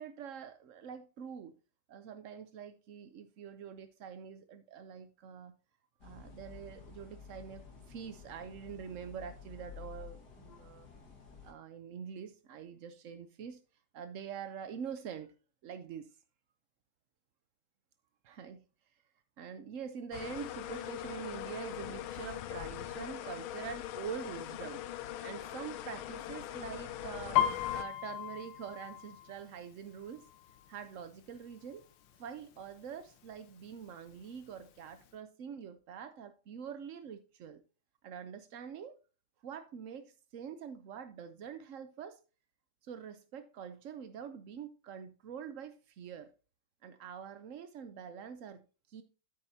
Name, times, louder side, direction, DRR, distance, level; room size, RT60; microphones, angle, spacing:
voice 1, 0.0-1.5 1.9-5.5 6.0-10.9 11.4-13.6 13.9-15.3 15.6-16.1 18.2-18.6 19.4-24.8 25.2-27.5 27.7-30.2 30.7-31.8 32.2-37.6 38.0-39.0 39.4-42.2 42.8-46.3 46.8-49.0, right 7 dB, 80° right, 0.7 m, -45 dB
sound 1, 6.0-11.5, left 7 dB, 55° left, 2.2 m, -52 dB
sound 2, 20.1-27.8, left 12 dB, 90° left, 1.5 m, -42 dB
Piano, 27.3-31.0 31.3-31.8 32.1-32.7 33.3-33.4 33.7-34.7 35.1-35.2, left 11 dB, 70° left, 1.4 m, -35 dB
9.0 x 8.7 x 2.7 m
omnidirectional pair, 2.2 m